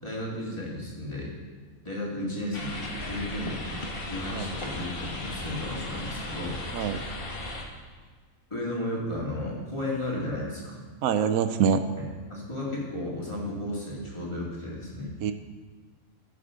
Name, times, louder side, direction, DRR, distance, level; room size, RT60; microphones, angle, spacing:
voice 1, 0.0-1.3 1.8-7.1 8.5-10.8 12.0-15.1, left 1 dB, 20° left, -5 dB, 2.4 m, -34 dB
sound 1, 2.5-7.6, left 2 dB, 45° left, 1.3 m, -36 dB
voice 2, 11.0-11.8 15.2-15.3, right 7 dB, 85° right, 10 dB, 1.0 m, -24 dB
15.0 x 6.8 x 3.7 m, 1.5 s
omnidirectional pair, 1.5 m